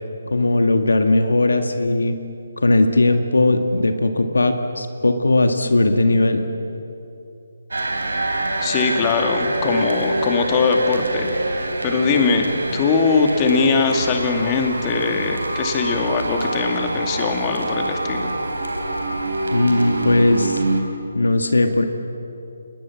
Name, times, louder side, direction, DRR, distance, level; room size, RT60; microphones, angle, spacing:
voice 1, 0.3-2.2 2.6-6.4 19.5-20.6 21.2-21.9, left 2 dB, 80° left, 7 dB, 1.9 m, -18 dB
sound 1, 7.7-20.8, right 2 dB, 80° right, 3.8 m, -26 dB
voice 2, 8.6-11.4 11.8-18.3, left 4 dB, 25° left, 3 dB, 2.5 m, -21 dB
27.5 x 20.5 x 7.5 m, 2.8 s
figure-of-eight pair, 150°, 0 cm